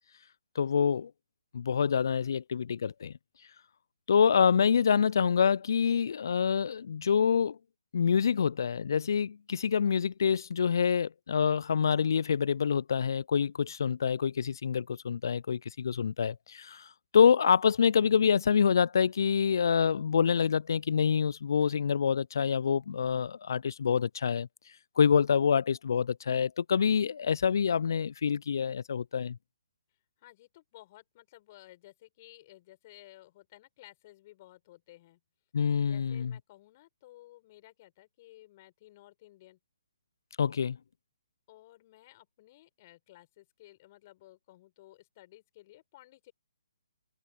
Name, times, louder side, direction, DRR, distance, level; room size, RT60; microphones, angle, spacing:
voice 1, 0.6-1.1 1.5-3.1 4.1-7.6 7.9-16.9 17.1-24.5 25.0-29.4 35.5-36.3 40.4-40.8, left 7 dB, 60° left, 0.4 m, -26 dB
voice 2, 30.2-35.2 35.8-39.6 41.5-46.3, left 16 dB, 35° left, 6.2 m, -55 dB
figure-of-eight pair, 140°, 2 cm